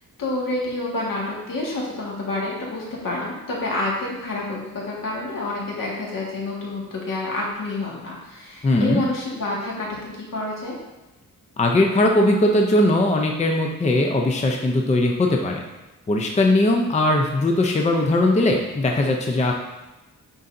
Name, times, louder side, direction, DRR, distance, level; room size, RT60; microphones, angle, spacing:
voice 1, 0.2-10.8, left 2 dB, 70° left, -4 dB, 1.8 m, -28 dB
voice 2, 8.6-9.1 11.6-15.6 16.1-19.5, left 1 dB, 20° left, 2 dB, 0.5 m, -19 dB
9.6 x 4.0 x 2.6 m, 1.1 s
wide cardioid pair, 135°, 34 cm